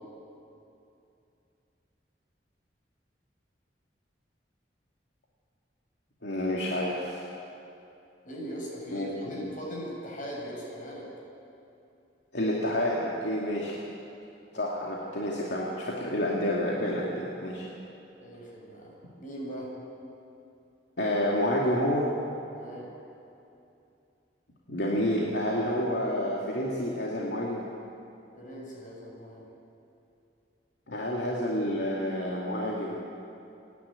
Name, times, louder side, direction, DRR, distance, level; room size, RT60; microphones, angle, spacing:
voice 1, 6.2-7.3 8.9-9.4 12.3-13.8 14.5-17.6 21.0-22.1 24.7-27.6 30.9-33.0, left 1 dB, 85° left, -4 dB, 2.5 m, -29 dB
voice 2, 8.2-11.1 18.2-19.7 22.5-23.0 28.3-29.4, equal, 50° left, -3 dB, 6.7 m, -40 dB
28.0 x 11.0 x 8.9 m, 2.7 s
head